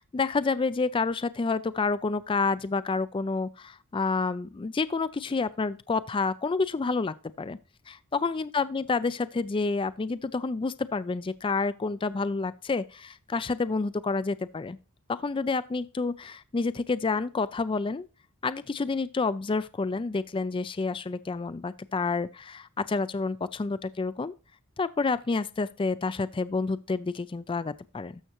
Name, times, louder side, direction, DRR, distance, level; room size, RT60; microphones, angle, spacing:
voice 1, 0.0-7.6 7.9-14.8 15.1-18.1 18.4-24.3 24.8-28.2, left 4 dB, 25° left, 0.3 m, -29 dB
13.0 x 6.6 x 3.0 m
head